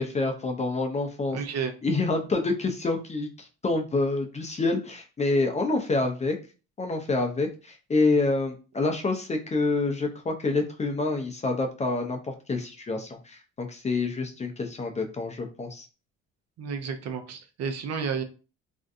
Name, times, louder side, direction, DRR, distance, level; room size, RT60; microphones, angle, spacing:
voice 1, 0.0-1.4 1.8-6.4 6.8-12.2 12.5-15.8, left 3 dB, 20° left, 4 dB, 0.5 m, -27 dB
voice 2, 1.3-1.7 16.6-18.2, right 6 dB, 55° right, 7 dB, 0.6 m, -31 dB
2.6 x 2.2 x 2.6 m, 0.34 s
supercardioid pair, 70°, 32 cm